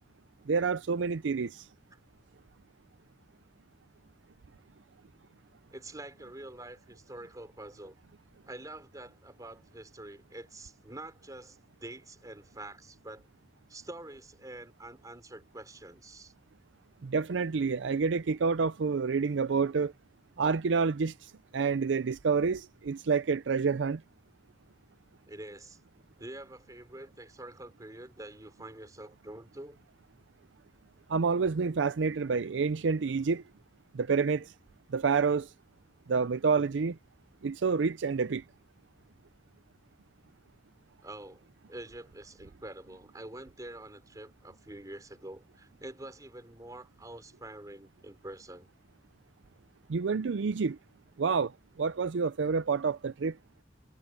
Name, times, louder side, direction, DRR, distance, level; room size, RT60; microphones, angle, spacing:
voice 1, 0.5-1.7 17.0-19.9 20.4-24.0 31.1-33.4 33.9-34.5 34.9-35.5 36.1-37.0 37.4-38.4 49.9-50.8 51.2-51.5 51.8-53.4, right 5 dB, 75° right, 0.5 m, -28 dB
voice 2, 5.7-8.0 8.5-13.3 13.7-16.3 25.3-25.8 26.2-29.8 41.0-41.4 41.7-48.7, right 1 dB, 20° right, 3.8 m, -46 dB
head